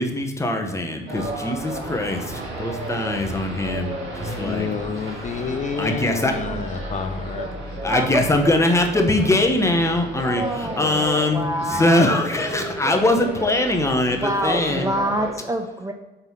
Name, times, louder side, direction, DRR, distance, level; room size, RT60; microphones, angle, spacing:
voice 1, 0.0-4.7 5.4-6.3 7.8-14.9, left 1 dB, 15° left, 3 dB, 0.9 m, -22 dB
sound 1, 1.1-15.3, right 1 dB, 75° right, 1.6 m, -33 dB
voice 2, 4.2-7.5, left 6 dB, 40° left, 6 dB, 0.4 m, -29 dB
voice 3, 6.2-6.7 7.9-8.2 10.2-12.3 14.2-15.9, right 1 dB, 15° right, 5 dB, 0.4 m, -27 dB
4.6 x 3.8 x 5.6 m, 1.1 s
cardioid pair, 90°, 20 cm